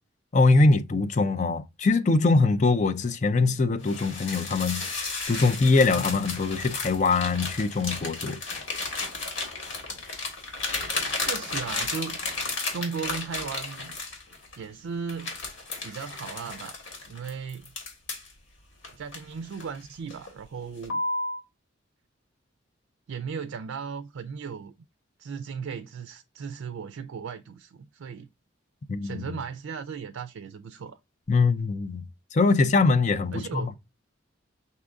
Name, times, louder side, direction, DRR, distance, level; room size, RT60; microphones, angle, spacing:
voice 1, 0.3-8.4 28.9-29.4 31.3-33.7, left 3 dB, 35° left, 0.4 m, -23 dB
sound 1, 3.8-14.6 15.1-18.3 18.8-19.8 20.1-20.4 20.8-21.4, left 3 dB, 75° left, 1.8 m, -33 dB
voice 2, 11.1-12.2 12.7-14.0 14.6-15.4 15.8-16.8 17.1-17.7 18.9-21.0 23.1-24.7 25.2-28.3 29.0-31.0 33.3-33.7, right 6 dB, 90° right, 0.4 m, -36 dB
5.5 x 2.5 x 3.4 m
head